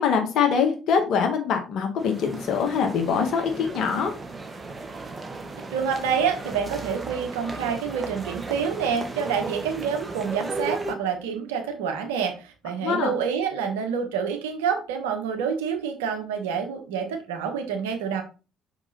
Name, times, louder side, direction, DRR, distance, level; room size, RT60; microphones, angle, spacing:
voice 1, 0.0-4.1 12.8-13.1, left 6 dB, 60° left, 4 dB, 1.7 m, -23 dB
sound 1, 2.0-10.9, right 3 dB, 25° right, 1.4 m, -36 dB
voice 2, 5.7-18.2, right 6 dB, 80° right, 5 dB, 1.3 m, -27 dB
5.9 x 5.3 x 4.1 m, 0.32 s
hypercardioid pair, 50°, 0 cm